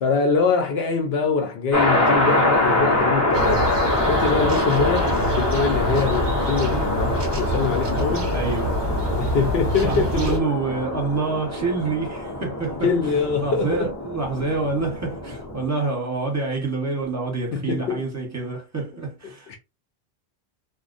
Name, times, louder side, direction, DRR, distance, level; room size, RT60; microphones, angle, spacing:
voice 1, 0.0-3.7 4.0-8.4 9.2-10.4 12.8-13.9 17.5-18.0 19.5-19.6, left 5 dB, 70° left, 0.9 m, -24 dB
sound 1, 1.7-15.6, left 1 dB, 20° left, 0.4 m, -24 dB
sound 2, 3.3-10.4, right 1 dB, 40° right, 0.4 m, -27 dB
voice 2, 8.3-8.8 9.8-19.6, right 3 dB, 15° right, 0.8 m, -27 dB
2.5 x 2.0 x 2.4 m
omnidirectional pair, 1.1 m